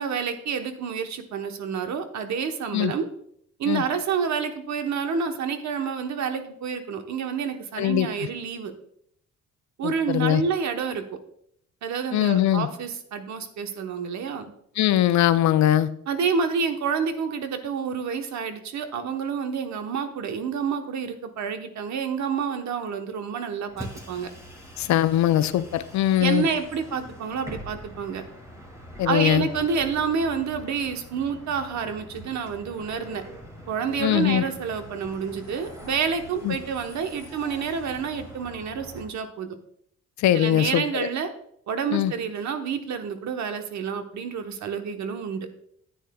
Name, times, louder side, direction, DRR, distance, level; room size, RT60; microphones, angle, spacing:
voice 1, 0.0-3.0 3.6-8.7 9.8-11.0 11.8-14.5 16.1-24.3 26.2-28.2 29.0-33.2 33.7-39.6 40.3-41.3 41.7-45.5, right 6 dB, 65° right, 7 dB, 1.1 m, -28 dB
voice 2, 7.8-8.1 9.8-10.4 12.1-12.7 14.8-15.9 24.8-26.5 29.0-29.5 34.0-34.4 36.4-36.6 40.2-41.1 41.9-42.1, left 12 dB, 65° left, 13 dB, 0.5 m, -21 dB
Bus, 23.7-39.1, equal, 10° right, 2.5 m, -44 dB
10.0 x 9.0 x 2.3 m, 0.70 s
cardioid pair, 90°, 30 cm